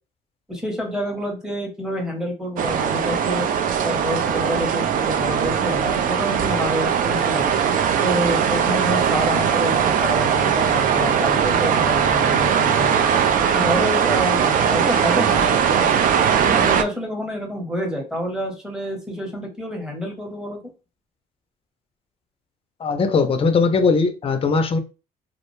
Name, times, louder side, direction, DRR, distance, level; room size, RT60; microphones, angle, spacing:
voice 1, 0.5-3.5 3.8-7.5 8.0-13.0 13.5-15.9 16.4-20.6, equal, 5° right, 0.8 m, -28 dB
sound 1, 2.6-16.8, right 7 dB, 55° right, 0.4 m, -20 dB
voice 2, 22.8-24.8, left 4 dB, 35° left, 0.5 m, -19 dB
2.4 x 2.1 x 3.0 m
cardioid pair, 110°, 17 cm